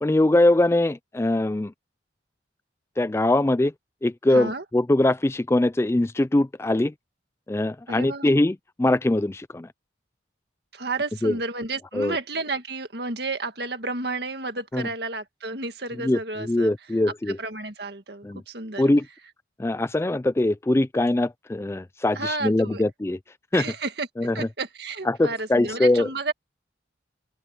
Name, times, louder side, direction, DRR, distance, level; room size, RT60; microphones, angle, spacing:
voice 1, 0.0-1.7 3.0-3.7 4.0-6.9 7.5-9.7 11.2-11.3 11.9-12.2 14.7-14.8 16.0-17.4 18.2-18.4 18.8-19.1 19.6-23.2 23.5-23.6 24.2-24.5 25.1-26.1, left 1 dB, 15° left, 0.3 m, -22 dB
voice 2, 4.3-4.6 7.9-8.3 10.7-16.7 17.4-18.8 22.2-22.8 23.5-26.3, right 3 dB, 60° right, 2.0 m, -31 dB
open air
head